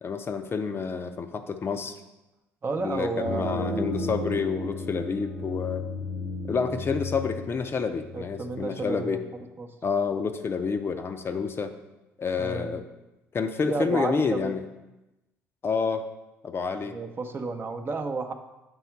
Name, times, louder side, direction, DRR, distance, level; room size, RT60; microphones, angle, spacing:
voice 1, 0.0-1.9 2.8-5.8 6.5-9.2 9.8-11.7 12.2-12.9 13.3-14.6 15.6-16.1 16.4-17.0, left 5 dB, 35° left, 7 dB, 0.5 m, -29 dB
voice 2, 2.6-3.8 8.1-9.2 9.6-9.7 12.4-12.8 13.7-14.5 16.8-18.3, right 3 dB, 35° right, 4 dB, 0.7 m, -31 dB
sound 1, 3.2-8.6, left 2 dB, 90° left, 1.5 m, -34 dB
7.0 x 3.6 x 4.5 m, 1.0 s
hypercardioid pair, 65°, 7 cm